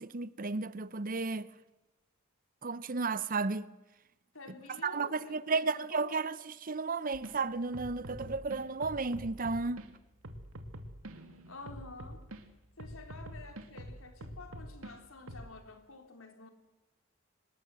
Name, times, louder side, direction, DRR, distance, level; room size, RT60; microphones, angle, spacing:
voice 1, 0.0-1.5 2.6-3.7 4.8-9.8, right 4 dB, 40° right, 0.8 m, -33 dB
voice 2, 4.3-6.3 11.5-12.2 12.8-16.5, left 3 dB, 75° left, 3.7 m, -50 dB
sound 1, 7.1-7.4 7.7-9.9 10.2-12.4 12.8-14.9 15.3-15.5, right 1 dB, 85° right, 2.4 m, -46 dB
25.5 x 20.0 x 7.7 m
head